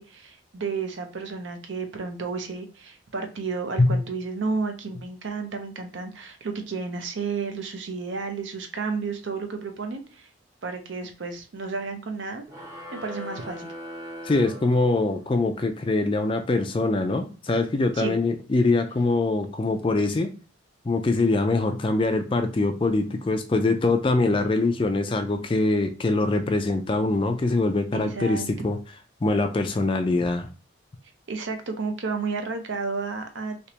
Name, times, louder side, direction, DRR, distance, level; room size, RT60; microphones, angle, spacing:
voice 1, 0.0-10.3 10.6-12.5 12.9-13.7 17.9-18.2 27.9-28.5 31.3-33.7, right 4 dB, 65° right, 6 dB, 0.6 m, -32 dB
sound 1, 12.5-15.4, left 1 dB, 20° right, 0.8 m, -40 dB
voice 2, 14.2-20.3 20.8-28.8 29.2-30.5, left 2 dB, 25° left, 6 dB, 0.3 m, -23 dB
3.3 x 2.9 x 2.8 m, 0.35 s
head